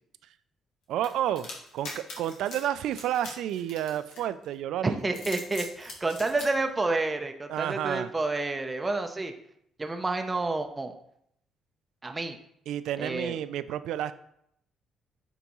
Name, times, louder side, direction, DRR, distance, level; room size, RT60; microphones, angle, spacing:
voice 1, 0.9-1.5 1.7-5.0 7.5-8.1 12.7-14.1, right 11 dB, 80° right, 14 dB, 0.3 m, -30 dB
sound 1, 1.0-4.5 5.0-6.5, left 3 dB, 75° left, 1.6 m, -42 dB
voice 2, 4.8-9.3 9.8-10.9 12.0-12.4 13.0-13.4, right 3 dB, 20° right, 5 dB, 0.5 m, -29 dB
9.2 x 3.5 x 3.0 m, 0.71 s
cardioid pair, 105°, 0 cm